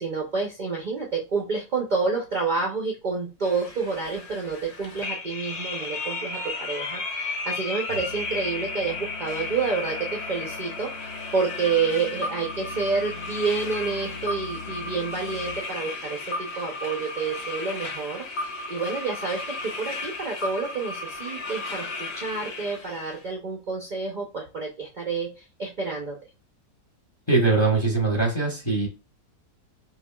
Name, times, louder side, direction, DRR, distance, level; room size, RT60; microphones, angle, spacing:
voice 1, 0.0-26.2, right 4 dB, 75° right, 0 dB, 0.4 m, -29 dB
sound 1, 3.4-23.2, left 3 dB, 50° left, 0.9 m, -34 dB
Musical instrument, 7.9-15.7, left 5 dB, 80° left, 1.3 m, -42 dB
voice 2, 27.3-28.9, right 3 dB, 25° left, -1 dB, 0.7 m, -22 dB
5.5 x 2.4 x 2.2 m, 0.30 s
omnidirectional pair, 1.7 m